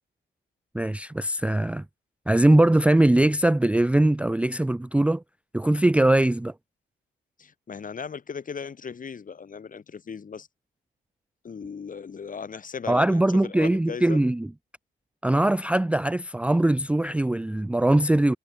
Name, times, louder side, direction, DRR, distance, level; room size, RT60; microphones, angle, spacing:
voice 1, 0.7-1.8 2.3-5.2 5.5-6.5 12.9-14.5 15.2-18.4, right 1 dB, 5° right, 0.5 m, -21 dB
voice 2, 7.4-10.5 11.4-14.2, left 6 dB, 40° left, 6.9 m, -37 dB
cardioid pair, 90°, 20 cm